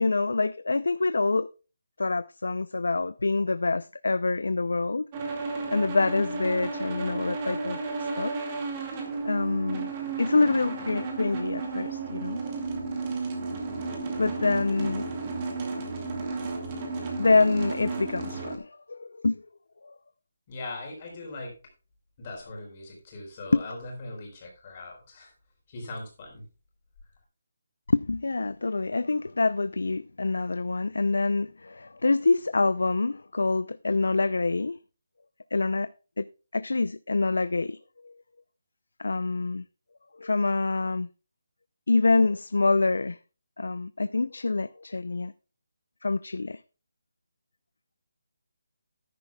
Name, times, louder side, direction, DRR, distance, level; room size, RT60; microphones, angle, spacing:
voice 1, 0.0-1.5 2.0-7.8 8.2-8.3 9.2-9.9 10.2-12.4 14.2-15.0 17.2-19.4 19.8-20.0 23.5-23.6 27.9-34.8 35.5-35.9 36.2-36.3 36.5-37.8 38.0-38.1 39.0-39.6 40.2-41.1 41.9-43.2 43.6-45.3 46.0-46.6, left 3 dB, 85° left, 0.6 m, -26 dB
sound 1, 5.1-18.6, right 3 dB, 20° right, 2.2 m, -33 dB
voice 2, 20.5-21.5 22.2-25.3 25.7-26.4, left 2 dB, 25° left, 4.3 m, -40 dB
13.5 x 10.5 x 2.3 m
hypercardioid pair, 175°, 0 cm